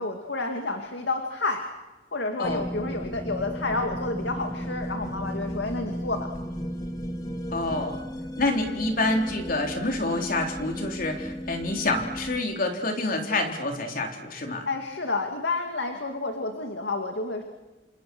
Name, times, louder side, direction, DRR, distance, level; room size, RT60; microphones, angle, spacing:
voice 1, 0.0-1.6 2.1-6.3 14.7-17.4, left 3 dB, 70° left, 4 dB, 2.4 m, -30 dB
sound 1, 2.4-12.4, equal, 20° left, 1.9 m, -35 dB
voice 2, 7.5-8.0 8.4-14.7, left 2 dB, 50° left, 3 dB, 3.9 m, -27 dB
29.0 x 27.0 x 6.2 m, 1.1 s
head